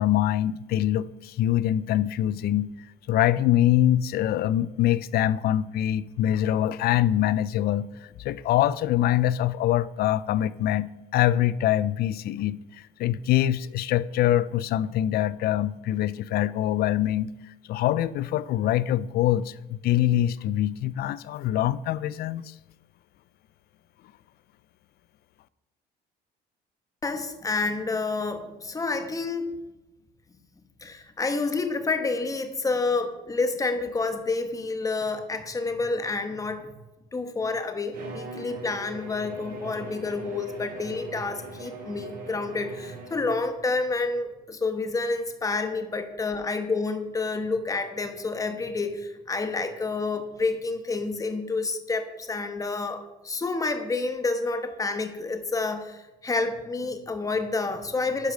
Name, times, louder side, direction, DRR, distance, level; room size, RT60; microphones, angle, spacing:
voice 1, 0.0-2.7 3.1-7.9 8.2-12.6 13.0-17.3 17.7-22.5, left 12 dB, 65° left, 0.5 m, -24 dB
voice 2, 27.0-29.6 30.8-36.7 37.1-58.3, left 3 dB, 20° left, 1.2 m, -29 dB
Bowed string instrument, 37.9-43.6, right 2 dB, 60° right, 3.1 m, -41 dB
11.5 x 5.0 x 6.3 m
cardioid pair, 110°, 17 cm